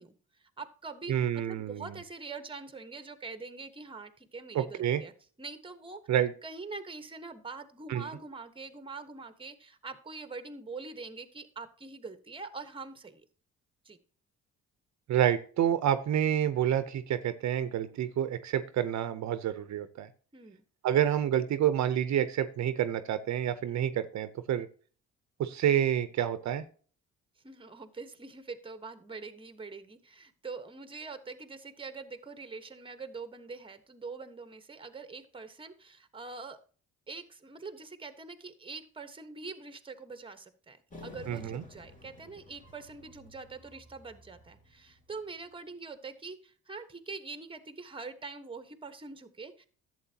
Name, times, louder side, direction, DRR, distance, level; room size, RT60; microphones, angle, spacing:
voice 1, 0.0-5.1 5.4-6.0 6.4-13.2 13.8-14.0 20.3-20.6 23.6-23.7 27.4-36.6 37.1-49.6, right 4 dB, 15° right, 10 dB, 1.2 m, -44 dB
voice 2, 1.1-1.9 4.5-5.0 6.1-6.3 7.9-8.1 15.1-20.1 20.8-24.7 25.4-26.6 41.3-41.6, right 10 dB, 65° right, 12 dB, 0.8 m, -28 dB
sound 1, 40.9-45.5, left 2 dB, 25° left, 2.6 m, -52 dB
11.5 x 7.9 x 2.8 m, 0.40 s
cardioid pair, 90°, 30 cm